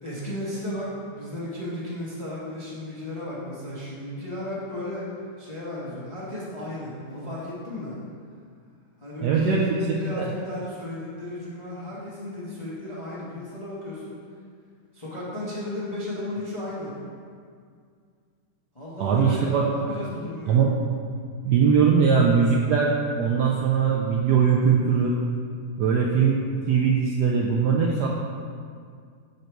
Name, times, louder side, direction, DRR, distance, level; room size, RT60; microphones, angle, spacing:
voice 1, 0.0-5.1 5.4-8.0 9.0-14.2 14.9-16.9 18.7-20.6, left 1 dB, 25° left, -8 dB, 0.7 m, -34 dB
voice 2, 9.2-9.6 10.1-10.3 19.0-19.6 20.5-20.7 21.4-25.2 25.8-28.1, right 6 dB, 75° right, -2 dB, 0.9 m, -21 dB
6.4 x 4.0 x 4.5 m, 2.2 s
omnidirectional pair, 2.2 m